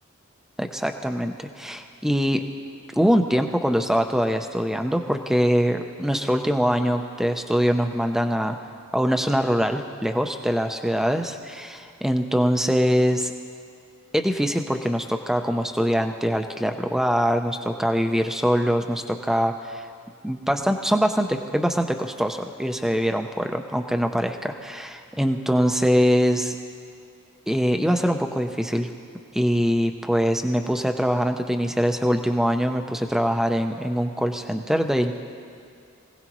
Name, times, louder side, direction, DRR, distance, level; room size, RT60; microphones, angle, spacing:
voice 1, 0.6-2.4 2.9-8.6 8.9-13.3 14.1-19.9 20.2-26.5 27.5-28.9 29.3-35.2, equal, ahead, 5 dB, 0.6 m, -23 dB
24.0 x 17.0 x 3.1 m, 2.4 s
head